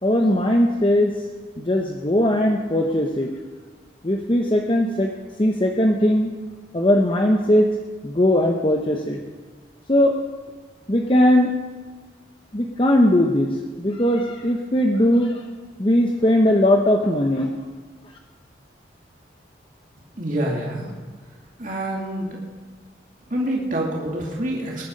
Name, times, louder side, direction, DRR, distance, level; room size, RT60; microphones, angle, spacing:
voice 1, 0.0-1.1 1.6-3.3 4.0-5.1 5.4-6.3 6.7-7.7 8.0-9.2 9.9-10.1 10.9-11.5 12.5-15.4 15.8-17.5, left 1 dB, 30° left, 2 dB, 0.9 m, -19 dB
voice 2, 20.2-20.9 21.6-22.4 23.3-24.8, right 1 dB, 45° right, -3 dB, 2.5 m, -26 dB
20.0 x 11.5 x 5.3 m, 1.4 s
head